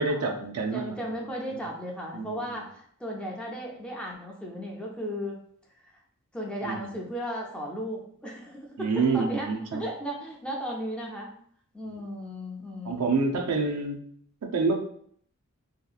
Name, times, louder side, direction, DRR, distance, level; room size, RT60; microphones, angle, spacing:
voice 1, 0.0-1.1 1.5-1.6 2.1-2.6 6.6-6.9 8.8-9.8 11.9-12.0 12.8-14.1 14.4-14.8, right 4 dB, 90° right, 3 dB, 0.4 m, -28 dB
voice 2, 0.7-5.4 5.8-5.9 6.3-11.3 11.7-13.1, equal, 5° left, -2 dB, 0.4 m, -35 dB
2.7 x 2.3 x 2.4 m, 0.63 s
head